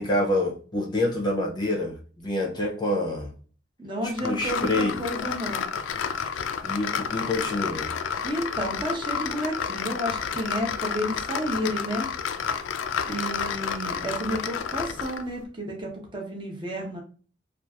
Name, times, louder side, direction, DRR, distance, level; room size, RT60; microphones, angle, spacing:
voice 1, 0.0-3.3 4.0-5.0 6.6-7.9, left 1 dB, 20° left, -1 dB, 0.6 m, -27 dB
voice 2, 3.8-5.7 8.2-12.1 13.1-17.0, equal, 25° right, -1 dB, 0.7 m, -31 dB
sound 1, 4.2-15.3, left 7 dB, 75° left, 0.3 m, -30 dB
3.1 x 2.4 x 2.3 m, 0.40 s
head